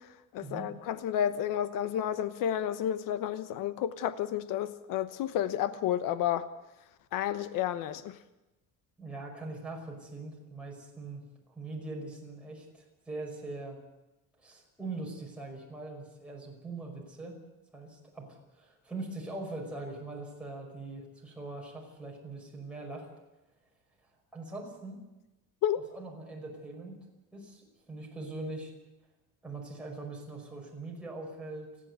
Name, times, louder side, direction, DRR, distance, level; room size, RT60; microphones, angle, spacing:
voice 1, 0.3-6.5 7.1-8.2 25.6-25.9, left 10 dB, 85° left, 1.0 m, -31 dB
voice 2, 9.0-11.2 11.6-13.8 14.4-17.4 17.7-23.1 24.3-25.0 25.9-27.0 27.3-28.7 29.4-31.7, right 2 dB, 5° right, 5.4 m, -42 dB
30.0 x 10.5 x 8.2 m
cardioid pair, 175°, 32 cm